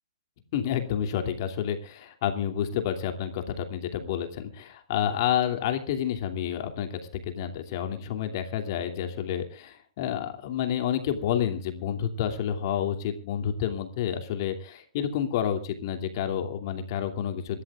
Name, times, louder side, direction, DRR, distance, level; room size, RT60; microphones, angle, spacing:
voice 1, 0.5-17.6, left 9 dB, 45° left, 6 dB, 2.7 m, -29 dB
26.0 x 13.5 x 2.4 m, 0.38 s
figure-of-eight pair, 120°, 3 cm